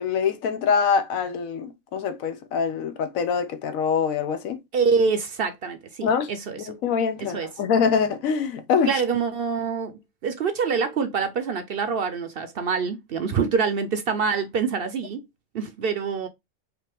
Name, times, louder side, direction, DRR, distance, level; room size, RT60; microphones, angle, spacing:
voice 1, 0.0-4.6 6.0-6.3 6.7-9.0, left 6 dB, 90° left, 1.2 m, -24 dB
voice 2, 4.7-6.7 7.2-7.5 8.9-15.2 15.5-16.3, right 5 dB, 55° right, 0.7 m, -26 dB
4.9 x 2.9 x 3.4 m
omnidirectional pair, 1.4 m